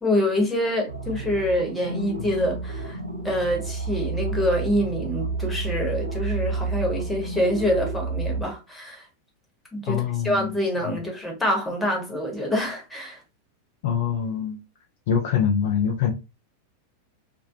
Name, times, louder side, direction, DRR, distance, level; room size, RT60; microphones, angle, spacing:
voice 1, 0.0-3.0 3.2-9.1 9.7-13.2, equal, 5° left, 1.1 m, -26 dB
sound 1, 0.9-8.4, right 3 dB, 85° right, 0.7 m, -30 dB
voice 2, 9.9-10.5 10.9-11.0 13.8-14.6 15.1-16.1, left 8 dB, 55° left, 0.4 m, -24 dB
2.9 x 2.5 x 2.6 m
figure-of-eight pair, 90°, 0 cm